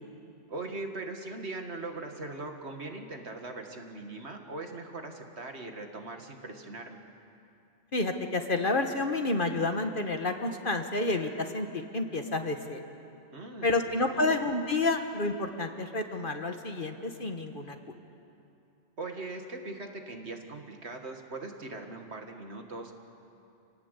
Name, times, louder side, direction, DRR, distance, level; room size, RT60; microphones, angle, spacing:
voice 1, 0.5-7.0 13.3-14.4 19.0-22.9, right 2 dB, 60° right, 4 dB, 2.2 m, -40 dB
voice 2, 7.9-12.8 13.6-17.8, left 2 dB, 45° left, 6 dB, 1.5 m, -29 dB
28.5 x 18.5 x 8.3 m, 2.7 s
omnidirectional pair, 1.2 m